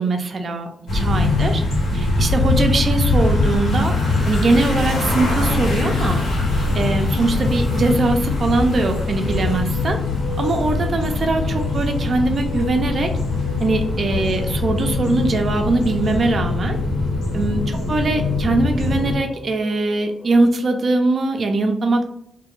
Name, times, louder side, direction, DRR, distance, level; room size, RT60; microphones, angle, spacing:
voice 1, 0.0-1.6 1.9-3.9 4.3-6.2 6.7-10.0 10.4-13.1 13.6-16.8 17.3-22.1, right 2 dB, 50° right, 4 dB, 0.3 m, -21 dB
sound 1, 0.9-19.1, left 3 dB, 90° left, 0.8 m, -22 dB
sound 2, 2.2-9.6, right 1 dB, 10° right, 0.6 m, -34 dB
sound 3, 5.3-21.0, left 2 dB, 35° left, 0.6 m, -38 dB
2.3 x 2.1 x 3.0 m, 0.71 s
cardioid pair, 85°, 0 cm